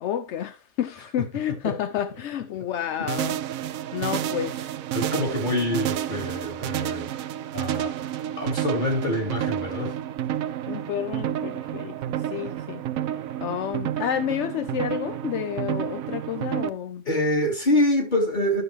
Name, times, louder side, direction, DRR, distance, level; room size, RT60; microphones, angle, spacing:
voice 1, 0.0-3.4 3.9-4.7 10.7-12.8 13.4-17.1, left 10 dB, 65° left, 0.8 m, -30 dB
sound 1, 3.1-16.7, right 11 dB, 70° right, 1.0 m, -30 dB
voice 2, 4.9-7.1 7.5-7.9 8.4-9.9 17.0-18.6, left 1 dB, 30° left, 2.7 m, -25 dB
12.5 x 6.7 x 3.1 m
omnidirectional pair, 1.6 m